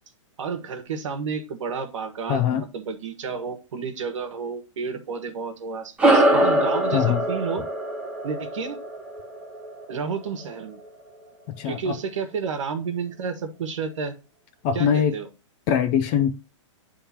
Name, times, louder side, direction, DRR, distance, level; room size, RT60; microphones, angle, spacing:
voice 1, 0.4-7.7 8.2-8.8 9.9-10.8 11.6-14.1 14.7-15.3, right 5 dB, 70° right, 1.4 m, -31 dB
voice 2, 2.3-2.6 6.9-7.2 11.5-12.0 14.6-15.2 15.7-16.3, left 8 dB, 20° left, 0.4 m, -22 dB
sound 1, 6.0-10.7, right 1 dB, 5° right, 0.7 m, -23 dB
8.6 x 3.5 x 4.2 m
hypercardioid pair, 170°, 17 cm